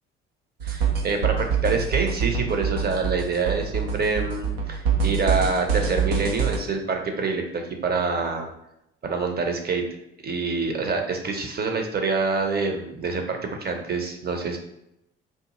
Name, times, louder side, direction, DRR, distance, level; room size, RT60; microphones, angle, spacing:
voice 1, 0.6-8.5 9.0-9.8 10.2-14.6, right 4 dB, 30° right, 3 dB, 0.8 m, -26 dB
sound 1, 0.6-6.6, right 6 dB, 80° right, 0.7 m, -25 dB
3.6 x 2.5 x 2.9 m, 0.81 s
hypercardioid pair, 55°, 30 cm